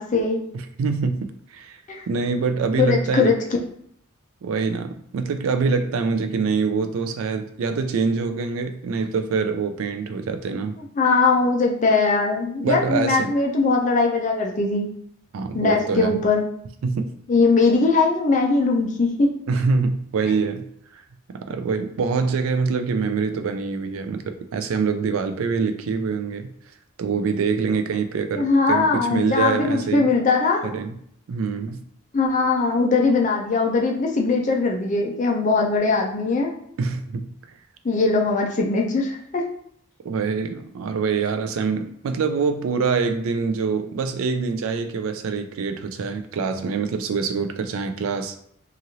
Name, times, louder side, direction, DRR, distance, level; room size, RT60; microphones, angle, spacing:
voice 1, 0.0-0.4 1.9-2.0 2.8-3.4 11.0-14.9 15.5-16.5 17.3-19.3 28.3-30.7 32.1-36.5 37.8-39.5, left 3 dB, 35° left, 1 dB, 0.4 m, -20 dB
voice 2, 0.5-1.8 2.1-3.3 4.4-10.8 12.6-13.3 15.3-16.2 16.8-17.1 19.5-20.6 20.9-21.0 21.3-26.5 27.0-30.1 30.6-31.0 31.3-31.8 36.8-37.3 40.0-48.4, right 5 dB, 80° right, 8 dB, 0.4 m, -25 dB
3.0 x 2.4 x 2.7 m, 0.67 s
head